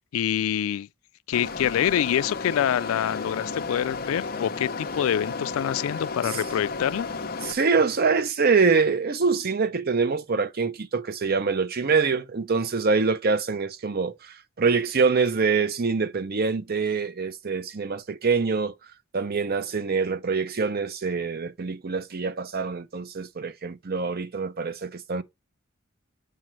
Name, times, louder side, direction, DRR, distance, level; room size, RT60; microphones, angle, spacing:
voice 1, 0.1-0.9 1.3-7.1, left 10 dB, 80° left, 0.3 m, -26 dB
sound 1, 1.3-7.5, left 4 dB, 45° left, 0.8 m, -33 dB
voice 2, 7.4-18.7 19.1-25.2, right 4 dB, 45° right, 0.6 m, -25 dB
7.5 x 5.0 x 3.0 m
head